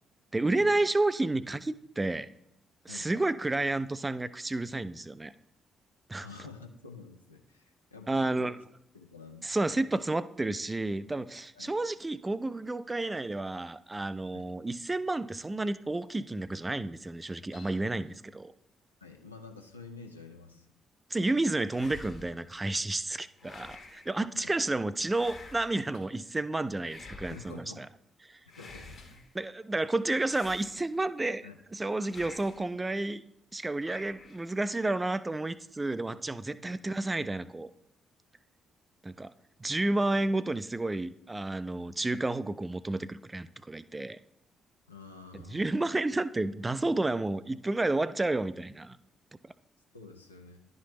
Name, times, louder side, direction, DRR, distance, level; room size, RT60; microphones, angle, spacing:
voice 1, 0.3-2.3 2.9-5.3 6.1-6.3 8.1-8.6 9.4-18.5 21.1-27.9 28.2-28.4 29.3-33.2 33.5-37.7 39.0-39.3 39.6-44.2 45.5-49.0 49.4-49.5, right 2 dB, 20° right, 15 dB, 0.3 m, -31 dB
voice 2, 6.2-8.6 8.9-9.8 11.5-11.7 14.3-14.5 19.0-20.7 24.3-24.5 27.2-27.9 28.5-29.2 31.4-31.6 36.6-36.7 39.8-40.2 44.9-45.7 49.9-50.7, left 4 dB, 85° left, 3 dB, 0.5 m, -49 dB
sound 1, 17.5-19.3 23.7-23.9 25.0-25.1 25.9-26.1 27.5-27.7 29.0-29.2 30.2-30.8 32.6-32.9, left 4 dB, 70° left, 1.4 m, -61 dB
sound 2, 21.7-22.5 23.4-24.1 25.1-25.9 26.8-27.6 28.5-29.3 30.2-31.1 32.0-32.7 33.8-34.5, left 3 dB, 40° left, 1.1 m, -49 dB
11.0 x 4.2 x 3.0 m, 0.78 s
figure-of-eight pair, 40°, 0 cm